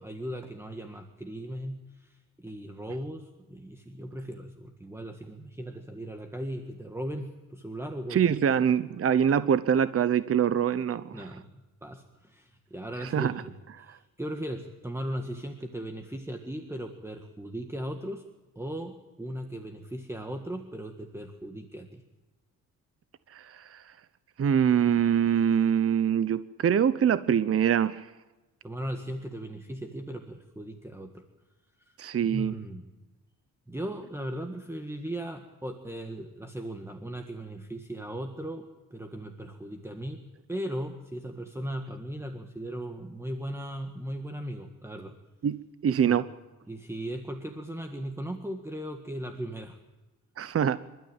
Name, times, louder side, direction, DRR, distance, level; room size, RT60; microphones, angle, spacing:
voice 1, 0.0-8.4 11.1-11.5 11.8-18.2 18.5-22.0 28.6-31.2 31.9-32.8 33.7-40.2 40.5-45.1 46.0-46.2 46.7-49.8, right 1 dB, 10° right, 5 dB, 1.7 m, -38 dB
voice 2, 8.1-11.1 13.1-13.3 13.8-13.9 23.7-23.8 24.4-28.0 32.0-32.5 45.4-45.6 45.8-46.2 50.4-50.8, right 8 dB, 45° right, 14 dB, 0.8 m, -24 dB
27.5 x 13.0 x 8.9 m, 1.2 s
cardioid pair, 105°, 33 cm